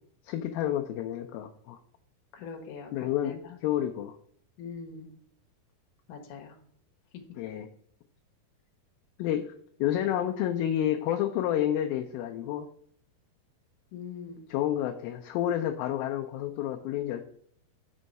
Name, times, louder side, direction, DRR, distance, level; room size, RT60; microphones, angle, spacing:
voice 1, 0.2-1.8 2.9-4.2 7.4-7.7 9.2-9.5 9.8-12.7 14.5-17.2, left 11 dB, 80° left, 4 dB, 2.3 m, -29 dB
voice 2, 2.3-3.6 4.6-5.1 6.1-6.6 13.9-14.4, left 5 dB, 60° left, 3 dB, 2.5 m, -42 dB
6.1 x 5.6 x 5.3 m, 0.63 s
omnidirectional pair, 4.5 m